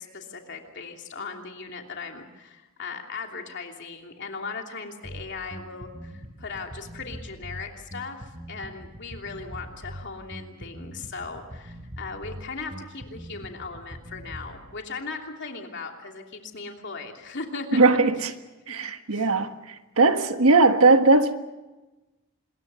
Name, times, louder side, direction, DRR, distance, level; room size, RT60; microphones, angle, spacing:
voice 1, 0.0-17.9 18.7-18.8 19.1-19.3, left 4 dB, 55° left, 3.0 m, -38 dB
Bass guitar, 5.0-14.6, equal, 30° right, 3.6 m, -42 dB
voice 2, 17.7-18.3 18.7-19.5 20.0-21.4, right 3 dB, 75° right, 1.5 m, -19 dB
26.0 x 21.5 x 6.9 m
head